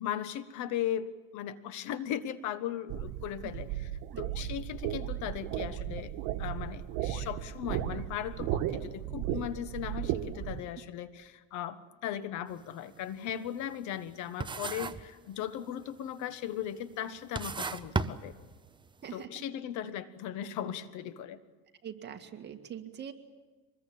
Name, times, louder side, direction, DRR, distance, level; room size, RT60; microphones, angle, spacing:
voice 1, 0.0-3.9 4.2-18.3 19.1-21.4, left 10 dB, 60° left, 13 dB, 1.4 m, -37 dB
sound 1, 2.9-10.6, right 12 dB, 70° right, 1.5 m, -35 dB
voice 2, 4.1-4.5 19.0-19.3 21.8-23.1, right 9 dB, 30° right, 5 dB, 2.0 m, -43 dB
sound 2, 12.5-12.7 13.1-14.1 14.4-15.2 15.4-16.0 16.6-16.7 17.2-18.9, right 4 dB, 15° right, 0.8 m, -35 dB
24.5 x 21.0 x 8.6 m, 1.3 s
cardioid pair, 125°, 33 cm